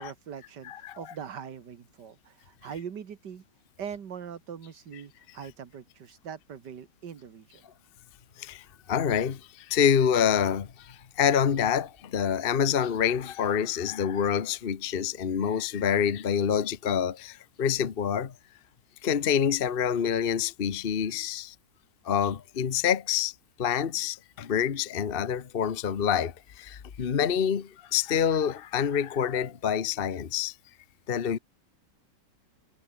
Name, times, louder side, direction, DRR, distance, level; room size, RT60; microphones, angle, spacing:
voice 1, 0.0-3.4 3.8-7.7, right 7 dB, 70° right, 2.2 m, -42 dB
voice 2, 0.6-1.0 8.4-18.3 19.0-21.5 22.0-30.5 31.1-31.4, left 8 dB, 40° left, 1.0 m, -27 dB
omnidirectional pair, 2.0 m